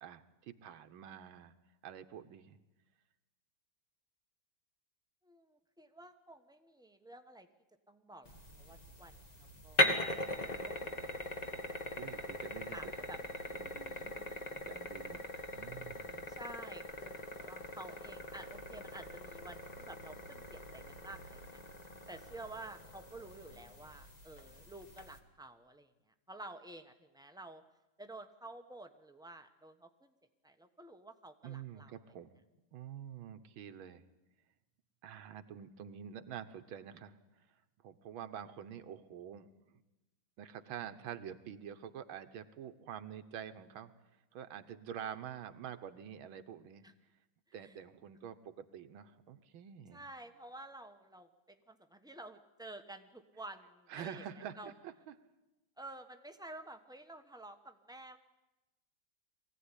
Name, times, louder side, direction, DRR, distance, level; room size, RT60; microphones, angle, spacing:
voice 1, 0.0-1.5 1.8-2.6 12.0-12.9 13.5-15.2 15.5-16.3 31.4-32.4 32.7-34.0 35.0-37.1 37.8-39.5 40.4-43.9 44.3-46.9 47.5-50.0 53.9-55.1, right 9 dB, 85° right, 9 dB, 1.8 m, -47 dB
voice 2, 5.2-7.5 7.9-9.9 10.6-10.9 11.5-12.2 12.7-13.2 16.3-21.6 22.1-27.6 28.0-30.1 30.4-32.0 38.2-38.3 46.8-46.9 47.5-47.7 49.9-54.7 55.8-58.2, right 2 dB, 5° right, 6 dB, 0.6 m, -51 dB
sound 1, 8.3-25.2, left 1 dB, 20° left, 1.5 m, -40 dB
22.5 x 16.0 x 9.9 m, 1.0 s
omnidirectional pair, 2.2 m